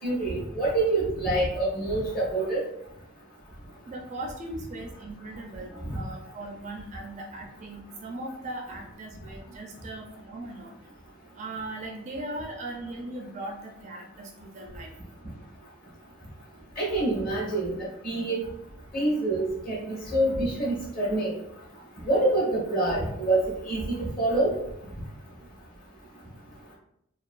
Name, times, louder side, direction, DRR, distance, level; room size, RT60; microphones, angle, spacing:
voice 1, 0.0-2.6 5.8-6.0 16.8-18.4 18.9-21.3 22.0-24.6, right 2 dB, 40° left, -6 dB, 1.4 m, -26 dB
voice 2, 3.9-10.7 11.3-14.9, right 2 dB, 30° right, 1 dB, 0.4 m, -39 dB
4.0 x 2.4 x 2.4 m, 0.76 s
head